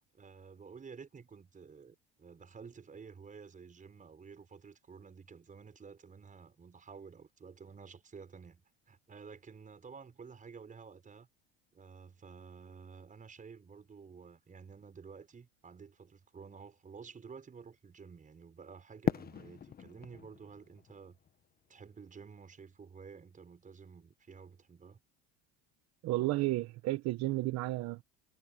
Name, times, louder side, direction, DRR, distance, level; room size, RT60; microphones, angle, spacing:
voice 1, 0.1-11.3 11.7-21.2 21.7-25.0, right 5 dB, 25° right, 6.1 m, -52 dB
Fireworks, 19.0-22.1, left 8 dB, 30° left, 1.4 m, -38 dB
voice 2, 26.0-28.0, right 18 dB, 55° right, 1.2 m, -32 dB
supercardioid pair, 105°, 31 cm